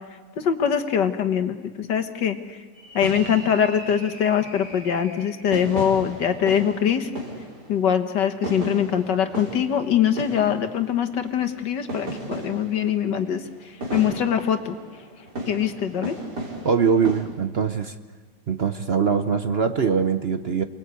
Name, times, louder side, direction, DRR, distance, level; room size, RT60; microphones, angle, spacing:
voice 1, 0.4-2.6 2.9-7.1 7.7-13.4 13.9-14.8 15.5-16.1, left 8 dB, 85° left, 7 dB, 2.0 m, -23 dB
sound 1, 2.7-17.2, right 1 dB, 70° right, 5.2 m, -36 dB
voice 2, 16.6-17.9 18.5-20.6, right 6 dB, 45° right, 8 dB, 0.9 m, -22 dB
29.0 x 21.0 x 8.3 m, 1.5 s
omnidirectional pair, 1.8 m